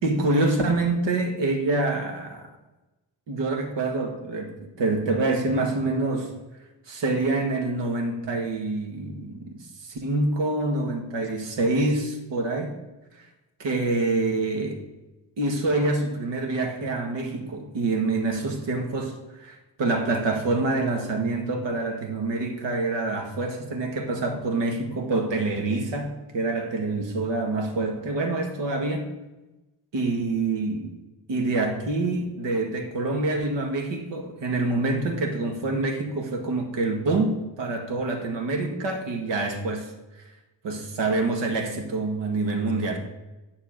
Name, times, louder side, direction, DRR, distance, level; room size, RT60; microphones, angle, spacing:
voice 1, 0.0-2.5 3.3-6.3 6.9-12.8 13.6-14.8 15.4-29.1 29.9-30.9 31.3-39.9 40.6-43.0, right 2 dB, 75° right, 2.1 m, -26 dB
9.9 x 6.9 x 6.6 m
wide cardioid pair, 155°, 44 cm